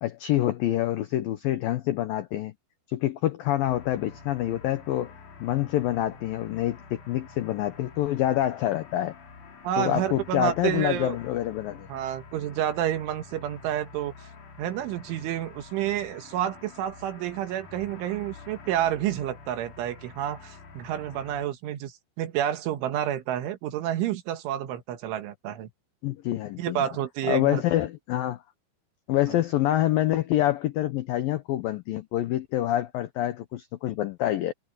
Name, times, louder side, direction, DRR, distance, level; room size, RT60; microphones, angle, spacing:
voice 1, 0.0-2.5 2.9-5.1 5.4-9.1 9.8-11.9 26.0-26.9 27.3-28.4 29.1-34.5, left 13 dB, 90° left, 2.0 m, -26 dB
sound 1, 3.7-21.5, left 4 dB, 45° left, 3.8 m, -47 dB
voice 2, 9.6-11.2 11.9-14.1 14.6-25.7 26.6-27.6, right 11 dB, 90° right, 4.1 m, -29 dB
omnidirectional pair, 5.4 m